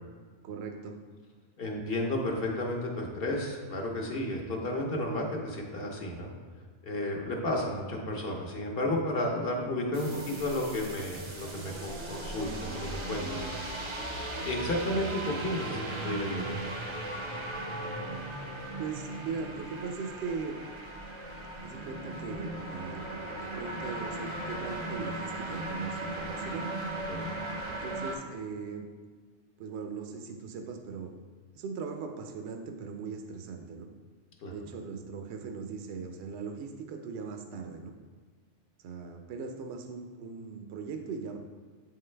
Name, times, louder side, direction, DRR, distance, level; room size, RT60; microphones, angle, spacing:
voice 1, 0.4-1.0 10.0-10.4 18.8-20.6 21.6-23.1 23.4-26.7 27.7-28.9 29.6-31.1 31.5-33.9 34.5-37.9 38.8-41.4, right 5 dB, 70° right, 4 dB, 0.8 m, -39 dB
voice 2, 1.6-6.3 6.8-10.1 10.4-13.5 14.4-16.5 27.1-27.3 34.4-34.5, left 1 dB, 55° left, 0 dB, 1.0 m, -32 dB
sound 1, 9.9-28.2, right 2 dB, 35° right, 0.5 m, -37 dB
7.7 x 3.8 x 3.2 m, 1.5 s
omnidirectional pair, 1.2 m